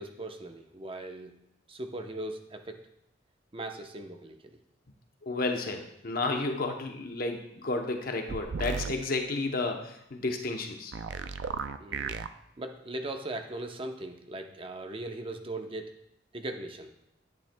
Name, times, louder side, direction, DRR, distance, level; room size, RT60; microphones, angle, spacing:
voice 1, 0.0-1.3 1.7-2.8 3.5-4.6 11.8-12.2 12.6-15.9 16.3-16.9, right 1 dB, 30° right, 5 dB, 0.7 m, -39 dB
voice 2, 5.2-10.9, left 3 dB, 55° left, 4 dB, 0.8 m, -32 dB
sound 1, 8.3-8.9 10.9-12.3, right 5 dB, 75° right, 0.4 m, -34 dB
10.5 x 8.9 x 2.2 m, 0.78 s
head